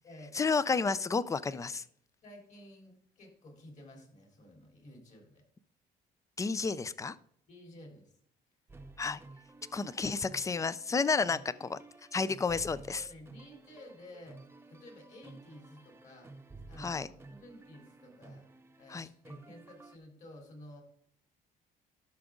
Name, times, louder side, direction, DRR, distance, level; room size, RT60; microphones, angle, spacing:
voice 1, 0.3-1.8 6.4-7.2 9.0-9.2 9.7-11.8 12.1-13.0 16.8-17.1 18.9-19.1, left 4 dB, 20° left, 17 dB, 0.4 m, -31 dB
voice 2, 1.5-1.8 2.2-5.4 7.5-8.1 12.9-14.4 14.7-16.3 16.7-18.5 18.8-20.8, left 1 dB, 45° left, 2 dB, 3.5 m, -52 dB
sound 1, 8.7-20.0, right 2 dB, 15° right, 0.8 m, -53 dB
11.5 x 6.0 x 3.8 m, 0.68 s
cardioid pair, 110°, 17 cm